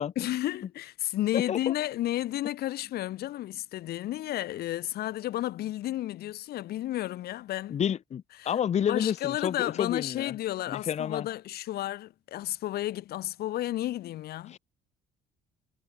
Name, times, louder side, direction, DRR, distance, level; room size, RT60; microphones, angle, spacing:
voice 1, 0.2-7.8 8.4-8.5 8.9-14.6, left 14 dB, 70° left, 1.3 m, -32 dB
voice 2, 1.3-1.7 7.7-10.4 10.7-11.3 14.5-14.6, left 8 dB, 40° left, 0.9 m, -30 dB
cardioid pair, 110°, 17 cm